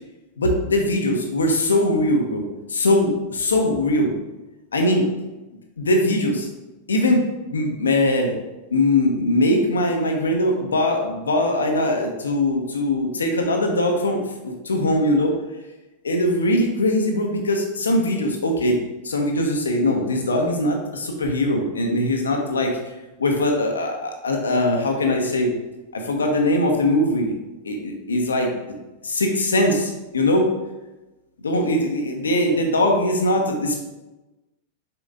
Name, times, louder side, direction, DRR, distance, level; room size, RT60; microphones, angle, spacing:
voice 1, 0.4-4.1 4.7-5.1 5.8-6.5 6.9-8.3 8.7-15.3 16.0-18.8 19.0-22.8 23.2-25.5 25.9-27.3 27.6-28.5 29.0-30.5 31.4-33.8, left 1 dB, 70° left, 2 dB, 1.1 m, -21 dB
6.9 x 5.1 x 3.7 m, 1.1 s
figure-of-eight pair, 90°, 0 cm